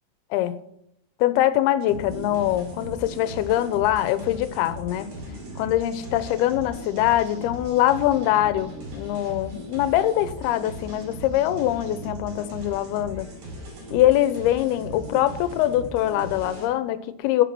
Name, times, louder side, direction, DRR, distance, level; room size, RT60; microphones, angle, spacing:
voice 1, 1.2-5.1 5.6-13.3 13.9-17.4, left 13 dB, 85° left, 13 dB, 2.7 m, -23 dB
sound 1, 1.9-16.7, right 1 dB, 65° right, 6.5 m, -38 dB
16.5 x 7.8 x 6.0 m, 0.77 s
omnidirectional pair, 4.5 m